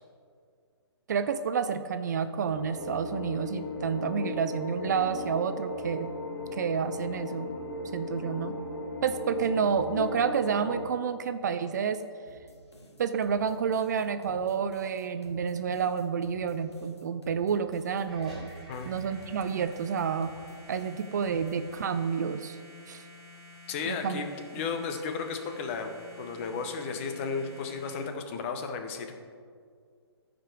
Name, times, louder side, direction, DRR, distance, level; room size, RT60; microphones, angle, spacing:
voice 1, 1.1-6.1 6.5-7.5 7.9-8.5 9.0-12.0 13.0-18.5 18.8-20.4 20.7-22.6 22.9-23.0 23.9-24.2, right 6 dB, 40° right, 11 dB, 0.4 m, -29 dB
sound 1, 2.5-10.9, left 2 dB, 55° left, 1.2 m, -37 dB
sound 2, 12.3-21.9, equal, 75° left, 1.7 m, -53 dB
sound 3, 18.1-28.1, left 1 dB, ahead, 2.2 m, -50 dB
voice 2, 23.7-24.3 24.5-25.9 26.2-29.2, left 5 dB, 30° left, 5 dB, 0.9 m, -34 dB
14.0 x 5.1 x 4.6 m, 2.1 s
figure-of-eight pair, 130°, 14 cm